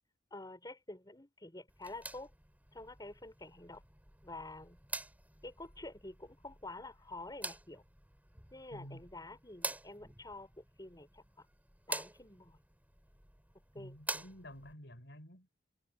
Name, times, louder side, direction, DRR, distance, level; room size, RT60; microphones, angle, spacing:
voice 1, 0.3-2.3 2.7-3.8 4.2-4.8 5.4-7.8 8.5-11.5 11.9-12.6 13.7-14.0, left 2 dB, 20° left, 5.8 m, -48 dB
sound 1, 1.7-14.7, right 2 dB, 10° right, 6.2 m, -47 dB
voice 2, 8.7-9.1 13.7-15.5, equal, 65° left, 6.3 m, -51 dB
head